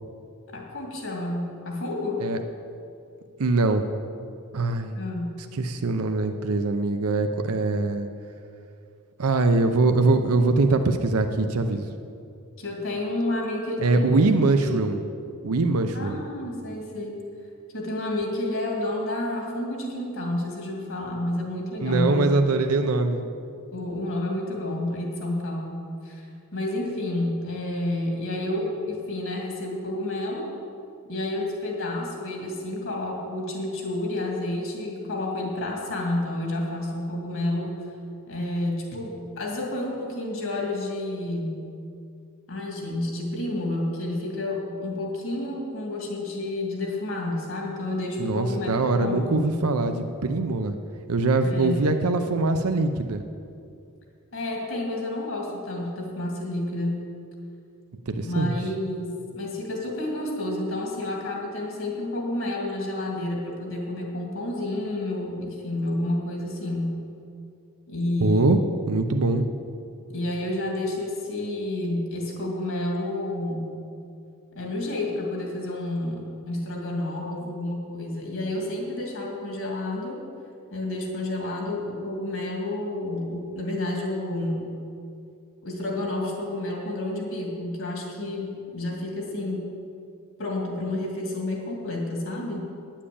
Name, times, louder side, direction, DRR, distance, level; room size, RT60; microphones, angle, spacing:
voice 1, 0.5-2.2 5.0-5.4 12.6-14.1 14.6-14.7 15.9-17.2 17.7-22.4 23.7-26.3 26.5-30.5 31.1-37.8 38.3-41.6 42.5-49.7 51.4-51.9 54.3-57.1 58.2-67.0 67.9-68.6 70.1-73.7 74.5-80.2 80.7-84.7 85.6-89.7 90.4-92.7, left 1 dB, 60° left, 0 dB, 2.5 m, -30 dB
voice 2, 3.4-3.8 4.5-5.0 5.5-8.1 9.2-11.9 13.8-15.0 15.4-16.2 21.8-23.2 48.2-49.9 50.2-50.8 51.1-53.2 58.1-58.5 68.2-68.6 68.9-69.5, right 3 dB, 75° right, 7 dB, 0.6 m, -22 dB
9.9 x 7.4 x 8.5 m, 2.5 s
head